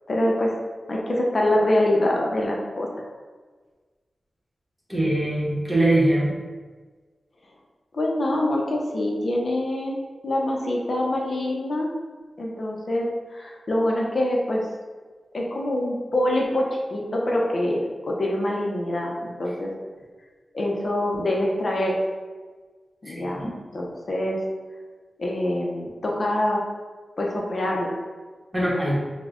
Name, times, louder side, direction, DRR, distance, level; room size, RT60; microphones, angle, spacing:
voice 1, 0.1-0.5 0.9-2.9 7.9-10.0 10.2-11.9 12.4-14.7 15.3-19.7 20.5-22.0 23.0-23.4 23.7-24.4 25.2-26.6 27.2-27.9, left 1 dB, 50° left, -2 dB, 0.5 m, -25 dB
voice 2, 4.9-6.3 23.0-23.5 28.5-29.0, right 1 dB, 15° right, -5 dB, 0.9 m, -22 dB
4.8 x 2.1 x 2.4 m, 1.4 s
wide cardioid pair, 95°, 0 cm